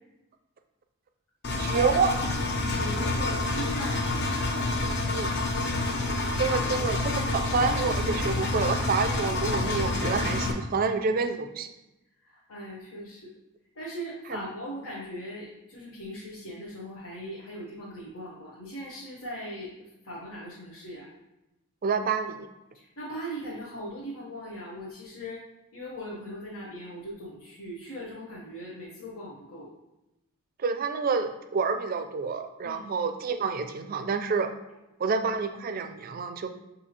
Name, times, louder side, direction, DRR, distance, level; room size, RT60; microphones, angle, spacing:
Engine, 1.4-10.5, left 2 dB, 50° left, 0.6 m, -28 dB
voice 1, 1.6-2.3 5.1-5.3 6.4-11.7 14.3-14.4 21.8-22.5 30.6-34.5 35.0-36.5, right 5 dB, 40° right, 8 dB, 0.3 m, -28 dB
voice 2, 2.5-4.2 4.9-5.2 12.2-13.3 13.7-21.1 22.7-25.4 25.7-29.7 32.6-32.8, equal, 80° left, -6 dB, 1.0 m, -39 dB
6.7 x 2.7 x 2.8 m, 0.95 s
head